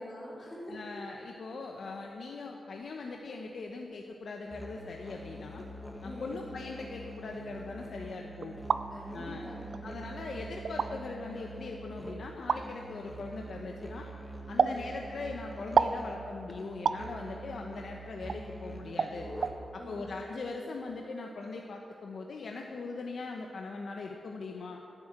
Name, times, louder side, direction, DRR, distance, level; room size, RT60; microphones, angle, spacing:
voice 1, 0.0-0.8 6.0-6.4 8.9-9.9 14.6-14.8 19.8-20.1, left 1 dB, 30° left, -6 dB, 4.0 m, -45 dB
voice 2, 0.7-5.6 6.0-8.6 9.1-9.5 9.8-14.1 14.5-19.3 19.7-24.8, left 3 dB, 60° left, 1 dB, 0.9 m, -40 dB
Musical instrument, 4.5-19.8, right 1 dB, 5° left, 1.2 m, -45 dB
sound 1, 8.4-8.8 9.7-9.8 10.6-10.9 12.5-12.6 14.6-14.8 15.8-16.0 16.8-17.0 18.3-18.4 19.0-19.1 19.4-19.5, right 6 dB, 70° right, 0.4 m, -27 dB
14.5 x 7.8 x 8.9 m, 2.8 s
wide cardioid pair, 160°, 0 cm